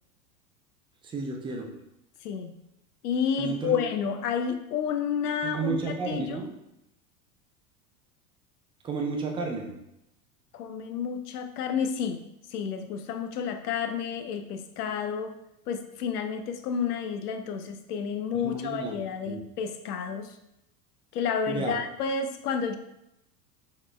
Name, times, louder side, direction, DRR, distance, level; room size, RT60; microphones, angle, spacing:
voice 1, 1.0-1.7 3.4-3.8 5.4-6.5 8.8-9.7 18.3-19.0 19.3-19.4 21.5-21.8, right 4 dB, 10° right, 2 dB, 0.4 m, -32 dB
voice 2, 2.2-2.5 3.0-6.4 10.5-12.2 12.5-15.4 15.7-20.3 21.1-22.8, left 6 dB, 70° left, 7 dB, 0.6 m, -30 dB
4.0 x 3.1 x 3.2 m, 0.85 s
hypercardioid pair, 95°, 47 cm